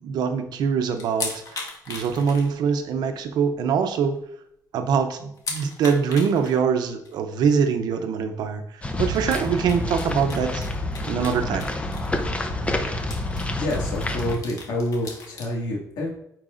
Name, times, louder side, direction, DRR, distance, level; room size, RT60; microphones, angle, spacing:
voice 1, 0.0-1.6 1.9-4.2 4.7-10.7 11.1-11.7, right 6 dB, 80° right, 7 dB, 0.7 m, -23 dB
sound 1, 1.0-2.9 3.3-3.4 3.8-3.9 4.2-4.3 5.4-6.6 7.1-7.2 8.5-8.6 9.2-12.3 12.6-12.7 13.0-15.5, left 3 dB, 55° left, 1.4 m, -37 dB
sound 2, 8.8-14.4, left 1 dB, 20° left, 0.7 m, -28 dB
voice 2, 13.6-16.1, left 1 dB, 85° left, -2 dB, 2.1 m, -28 dB
8.9 x 4.6 x 2.6 m, 0.77 s
cardioid pair, 125°, 7 cm